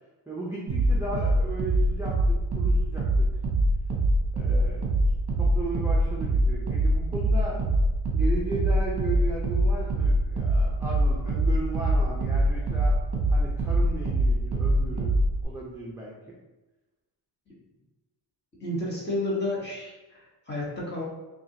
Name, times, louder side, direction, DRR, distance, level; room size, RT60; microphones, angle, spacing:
voice 1, 0.3-3.3 4.3-5.1 5.4-7.6 8.1-13.0 13.3-15.1 15.4-16.4, right 1 dB, 5° right, -6 dB, 0.5 m, -36 dB
sound 1, 0.7-15.4, right 1 dB, 40° right, 0.8 m, -24 dB
voice 2, 18.6-21.0, left 1 dB, 25° left, -5 dB, 1.2 m, -31 dB
5.9 x 2.5 x 2.7 m, 1.1 s
wide cardioid pair, 155°, 43 cm